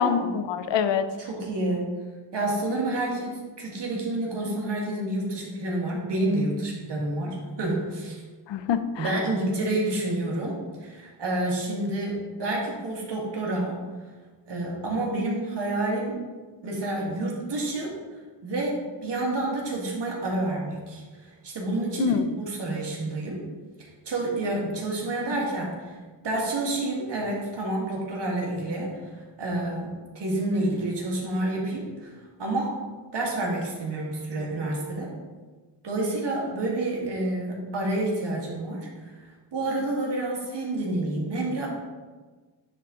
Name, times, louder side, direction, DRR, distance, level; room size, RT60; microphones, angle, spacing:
voice 1, 0.0-1.1 8.5-9.2 22.0-22.3, left 7 dB, 85° left, 11 dB, 0.6 m, -25 dB
voice 2, 1.2-1.9 2.3-8.2 9.0-13.7 14.5-16.2 16.6-17.9 18.4-23.4 24.1-26.0 26.2-32.1 32.4-32.8 33.1-35.1 35.8-39.1 39.5-41.7, right 2 dB, 70° right, -3 dB, 1.9 m, -29 dB
10.0 x 3.8 x 3.7 m, 1.4 s
cardioid pair, 75°, 43 cm